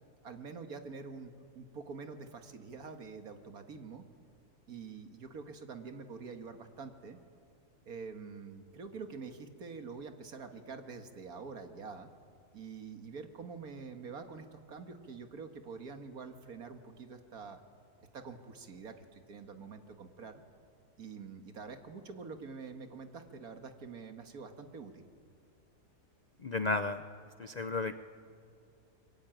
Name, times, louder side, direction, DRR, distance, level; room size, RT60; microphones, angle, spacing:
voice 1, 0.2-4.1 4.7-7.2 7.9-12.1 12.5-17.6 18.1-20.4 21.0-25.1, right 5 dB, 65° right, 7 dB, 2.0 m, -46 dB
voice 2, 26.4-27.0 27.4-27.9, left 3 dB, 55° left, 10 dB, 0.4 m, -33 dB
25.0 x 22.5 x 9.1 m, 2.4 s
omnidirectional pair, 1.7 m